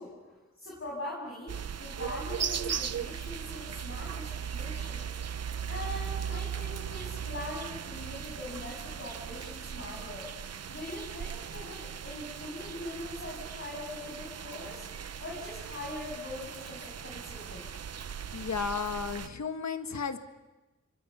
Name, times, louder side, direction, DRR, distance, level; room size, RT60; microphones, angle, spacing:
voice 1, 0.0-1.5 1.8-5.0 5.7-10.3 10.7-14.8 15.2-17.7, left 1 dB, 45° left, -4 dB, 7.5 m, -42 dB
sound 1, 1.5-19.3, right 8 dB, 55° right, 0.7 m, -38 dB
voice 2, 18.3-20.2, left 5 dB, 65° left, 8 dB, 1.8 m, -33 dB
27.0 x 23.0 x 5.7 m, 1.1 s
cardioid pair, 50°, 30 cm